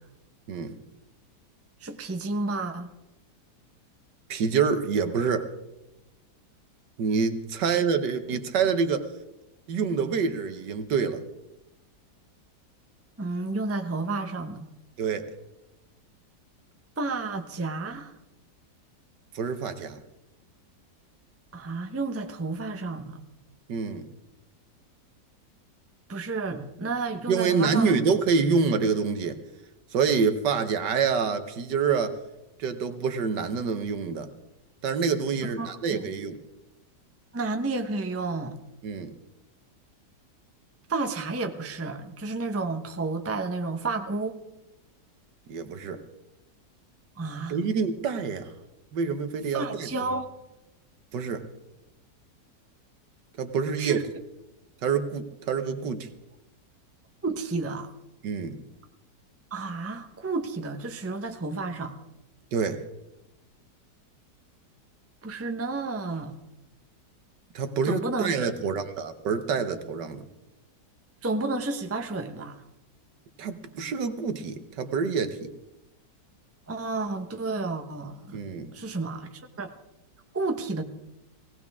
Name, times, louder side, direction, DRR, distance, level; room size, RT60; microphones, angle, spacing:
voice 1, 1.8-2.9 7.6-7.8 13.2-14.7 17.0-18.1 21.5-23.2 26.1-27.9 35.4-36.0 37.3-38.6 40.9-44.4 47.2-47.6 49.5-50.3 53.8-54.0 57.2-57.9 59.5-61.9 65.2-66.3 67.8-68.5 71.2-72.6 76.7-78.4 78.7-79.3 79.6-79.7 80.3-80.8, right 3 dB, 10° right, 6 dB, 0.6 m, -31 dB
voice 2, 4.3-5.5 7.0-9.1 9.7-11.2 15.0-15.3 19.3-20.0 23.7-24.1 27.3-29.4 29.9-32.2 32.6-34.3 34.8-36.4 38.8-39.1 45.5-46.0 47.5-48.5 48.9-49.9 51.1-51.5 53.4-54.0 54.8-56.1 58.2-58.6 62.5-62.8 67.5-70.2 73.4-75.5 78.3-78.7, right 5 dB, 75° right, 9 dB, 1.7 m, -27 dB
18.0 x 17.5 x 3.6 m, 0.95 s
omnidirectional pair, 1.9 m